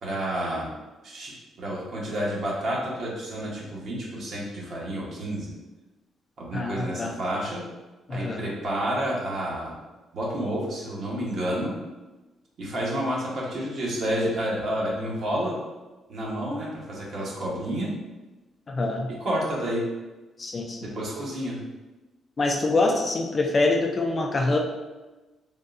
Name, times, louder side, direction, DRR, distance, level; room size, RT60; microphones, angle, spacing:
voice 1, 0.0-0.7 1.0-1.3 1.6-5.5 6.4-7.6 8.1-9.7 10.1-11.7 12.6-15.5 16.1-17.9 19.1-19.8 20.8-21.6, equal, 60° right, -4 dB, 1.0 m, -30 dB
voice 2, 6.5-7.1 8.1-8.4 18.7-19.1 20.4-20.8 22.4-24.6, left 2 dB, 35° left, 2 dB, 0.4 m, -25 dB
3.6 x 2.2 x 2.5 m, 1.2 s
cardioid pair, 90°, 0 cm